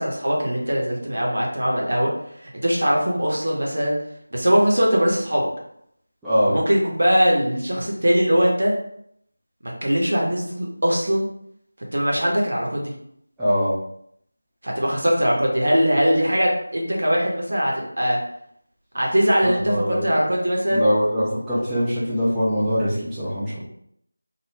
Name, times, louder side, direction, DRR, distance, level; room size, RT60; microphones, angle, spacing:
voice 1, 0.0-2.1 2.4-4.0 4.3-5.5 6.5-8.7 9.6-11.3 11.9-12.9 14.6-18.2 18.9-20.9, equal, 65° right, -2 dB, 0.8 m, -21 dB
voice 2, 6.2-6.6 13.4-13.7 19.4-20.2 20.7-23.6, equal, 5° right, -14 dB, 0.5 m, -22 dB
2.4 x 2.1 x 3.2 m, 0.71 s
figure-of-eight pair, 170°, 0 cm